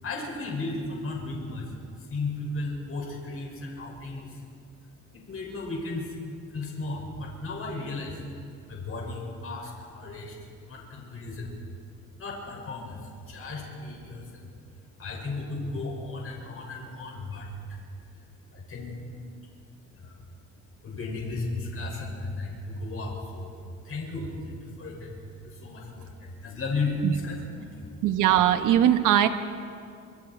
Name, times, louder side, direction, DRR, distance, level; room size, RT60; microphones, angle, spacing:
voice 1, 0.0-1.7 2.0-4.4 5.1-6.2 6.5-8.2 8.7-10.4 10.7-11.5 12.2-14.5 15.0-17.8 18.5-19.0 19.9-20.1 20.8-27.9, left 2 dB, 45° left, -1 dB, 6.4 m, -35 dB
voice 2, 28.0-29.3, right 11 dB, 85° right, 8 dB, 1.3 m, -20 dB
26.5 x 26.0 x 4.6 m, 2.3 s
cardioid pair, 90°, 30 cm